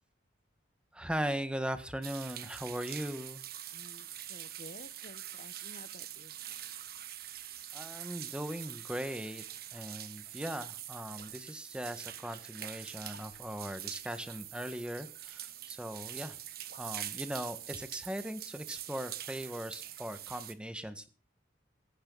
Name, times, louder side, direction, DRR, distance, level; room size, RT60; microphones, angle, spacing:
voice 1, 0.9-3.4 7.7-9.4 9.7-16.4 16.8-21.1, equal, 5° right, 9 dB, 1.6 m, -39 dB
sound 1, 2.0-20.5, right 12 dB, 55° right, 1.5 m, -44 dB
voice 2, 3.7-6.3, left 2 dB, 50° left, 15 dB, 1.0 m, -53 dB
17.5 x 15.0 x 4.0 m, 0.35 s
head